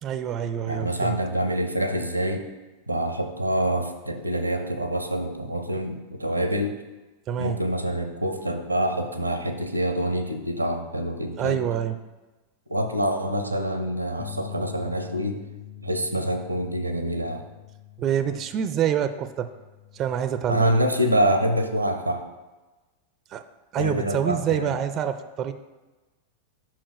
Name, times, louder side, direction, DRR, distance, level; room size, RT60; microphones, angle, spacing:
voice 1, 0.0-1.2 7.3-7.6 11.4-12.0 18.0-19.5 19.9-20.8 23.3-23.4 23.7-25.5, right 9 dB, 30° right, 10 dB, 0.4 m, -26 dB
voice 2, 0.7-2.5 2.9-6.8 7.4-11.6 12.7-15.4 15.8-17.4 20.5-22.3 23.8-24.8, equal, 90° right, 7 dB, 0.6 m, -26 dB
Bass guitar, 14.2-20.4, left 10 dB, 30° left, 0.9 m, -43 dB
5.5 x 4.5 x 4.9 m, 1.2 s
figure-of-eight pair, 90°, 0 cm